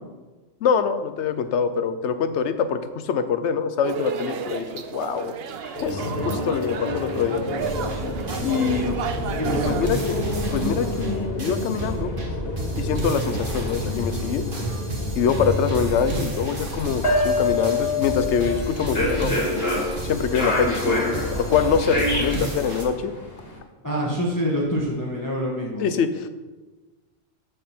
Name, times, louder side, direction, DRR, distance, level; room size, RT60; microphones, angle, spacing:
voice 1, 0.6-5.3 5.6-7.4 8.4-8.9 9.6-10.2 10.5-12.1 12.8-14.5 15.2-19.7 20.1-23.1 25.8-26.3, left 7 dB, 75° left, 11 dB, 1.0 m, -24 dB
sound 1, 3.8-9.9, right 7 dB, 60° right, 0.8 m, -32 dB
sound 2, 5.8-23.5, left 2 dB, 55° left, 2.1 m, -27 dB
sound 3, 7.6-22.8, right 2 dB, 45° right, 1.8 m, -32 dB
voice 2, 9.3-9.8 23.8-25.9, equal, 15° left, -4 dB, 1.4 m, -26 dB
14.0 x 5.3 x 4.4 m, 1.2 s
omnidirectional pair, 1.2 m